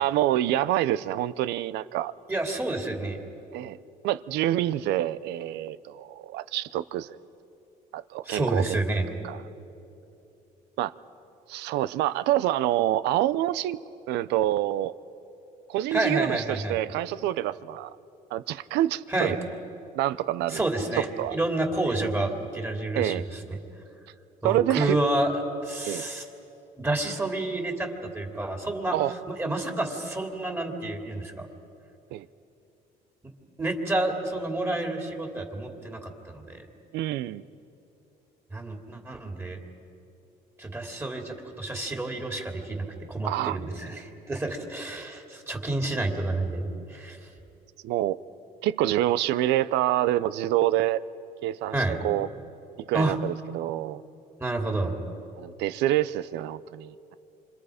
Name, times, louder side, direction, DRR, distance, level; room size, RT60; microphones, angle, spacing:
voice 1, 0.0-2.1 3.5-3.8 4.0-7.2 7.9-8.8 9.2-9.4 10.8-10.9 11.5-13.8 14.1-14.9 15.7-18.0 18.3-19.4 19.9-20.6 21.2-21.4 21.9-22.0 23.0-23.2 24.4-25.0 25.8-26.0 28.9-29.1 32.1-32.3 36.9-37.4 43.2-43.6 47.8-48.2 48.6-51.0 51.4-51.8 52.0-52.3 52.9-54.0 55.4-56.9, right 13 dB, 85° right, 16 dB, 0.6 m, -26 dB
voice 2, 2.3-3.2 8.2-9.1 15.9-16.8 19.1-19.3 20.5-21.1 21.3-23.2 23.5-23.6 24.4-25.3 25.6-26.2 26.8-27.9 28.1-29.0 29.3-31.5 33.6-36.7 38.5-39.6 40.6-47.2 51.7-52.0 52.9-53.2 54.4-54.9, right 2 dB, 15° right, 2 dB, 2.9 m, -29 dB
28.0 x 26.5 x 5.1 m, 2.8 s
cardioid pair, 110°, 17 cm